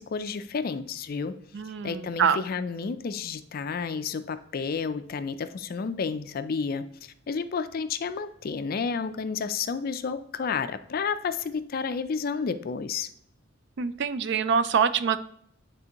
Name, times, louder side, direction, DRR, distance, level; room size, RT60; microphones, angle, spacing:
voice 1, 0.0-1.3 1.8-6.9 7.3-13.1, left 5 dB, 50° left, 11 dB, 0.4 m, -31 dB
voice 2, 1.5-2.4 13.8-15.2, right 6 dB, 60° right, 13 dB, 0.4 m, -25 dB
9.8 x 3.4 x 2.9 m, 0.68 s
head